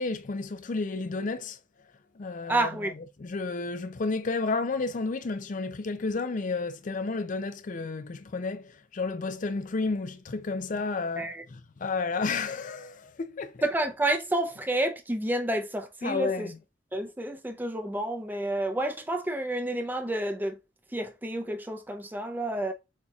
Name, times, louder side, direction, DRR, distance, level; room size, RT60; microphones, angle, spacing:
voice 1, 0.0-1.6 2.2-2.9 3.2-13.7 16.0-16.6, left 3 dB, 45° left, 0.4 m, -31 dB
voice 2, 2.5-2.9 11.2-11.4 13.6-16.5 16.9-20.6 20.9-22.7, right 1 dB, 10° right, 0.5 m, -29 dB
6.5 x 2.9 x 2.3 m
head